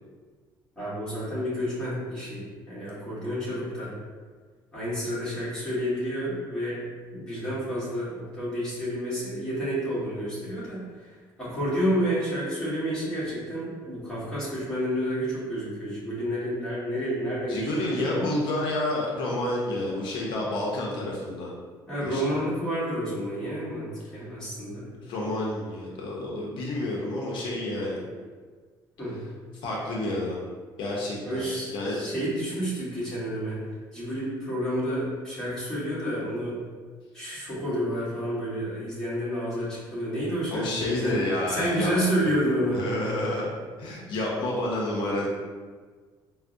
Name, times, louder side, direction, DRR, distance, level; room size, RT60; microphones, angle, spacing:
voice 1, 0.8-3.9 4.7-6.8 7.1-11.1 11.4-18.3 21.9-24.9 29.0-29.2 31.2-33.6 33.9-36.6 37.1-41.2 41.5-42.9, equal, 10° left, -10 dB, 1.2 m, -30 dB
voice 2, 17.5-21.5 22.0-22.4 25.0-28.0 29.6-30.4 30.8-31.5 31.7-32.1 40.5-41.9 42.7-45.3, left 1 dB, 70° left, -3 dB, 0.6 m, -29 dB
4.3 x 2.0 x 2.5 m, 1.5 s
cardioid pair, 165°, 9 cm